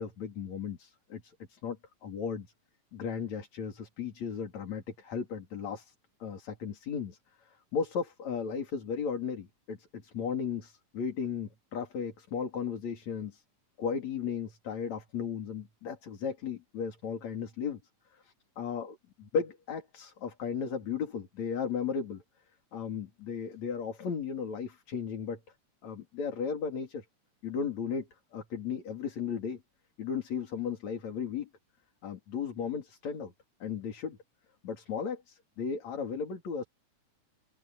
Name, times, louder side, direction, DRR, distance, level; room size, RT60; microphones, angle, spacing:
voice 1, 0.0-2.5 2.9-5.9 6.2-13.4 13.8-17.8 18.6-18.9 19.3-22.2 22.7-25.4 25.8-27.1 27.4-29.6 30.0-31.5 32.0-33.3 33.6-34.2 34.6-36.7, left 6 dB, 65° left, 4.5 m, -35 dB
open air
omnidirectional pair, 3.5 m